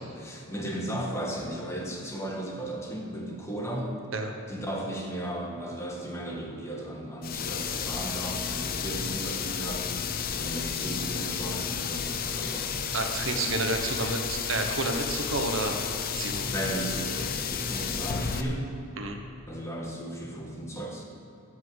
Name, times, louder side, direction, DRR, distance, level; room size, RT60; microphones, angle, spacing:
voice 1, 0.0-4.0 4.5-10.1 10.4-12.9 16.4-18.7 19.5-21.0, right 1 dB, 15° left, -1 dB, 1.5 m, -35 dB
sound 1, 7.2-18.4, left 6 dB, 45° left, 0.6 m, -32 dB
voice 2, 12.9-15.8 16.1-16.5 19.0-19.2, right 2 dB, 65° right, 4 dB, 1.1 m, -30 dB
12.5 x 6.0 x 7.9 m, 2.7 s
head